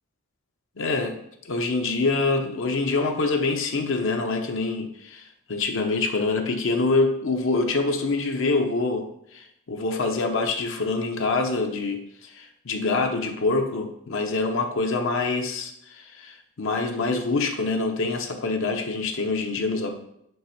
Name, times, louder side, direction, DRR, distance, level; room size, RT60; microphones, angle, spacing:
voice 1, 0.8-1.2 1.4-19.9, left 3 dB, 60° left, 4 dB, 0.7 m, -25 dB
5.4 x 3.4 x 5.8 m, 0.76 s
head